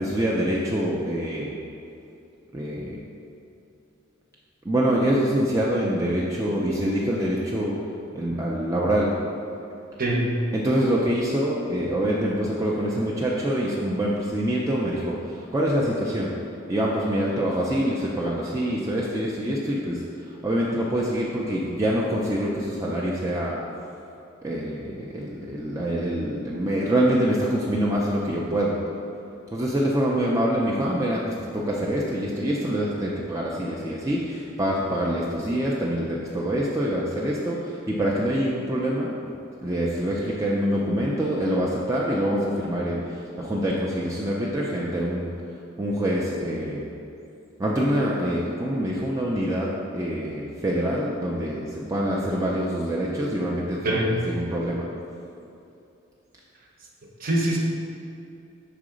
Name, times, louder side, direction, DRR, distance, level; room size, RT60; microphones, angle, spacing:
voice 1, 0.0-1.5 2.5-3.0 4.6-7.7 8.1-9.1 10.5-16.3 16.7-20.0 20.4-23.6 24.4-28.8 29.5-31.2 31.5-39.1 39.6-45.3 45.8-46.8 47.6-49.7 49.9-54.0 54.3-54.9, equal, 15° right, -5 dB, 0.4 m, -25 dB
voice 2, 53.8-54.2 57.2-57.6, right 1 dB, 45° right, -2 dB, 0.8 m, -23 dB
5.0 x 3.7 x 5.0 m, 2.7 s
head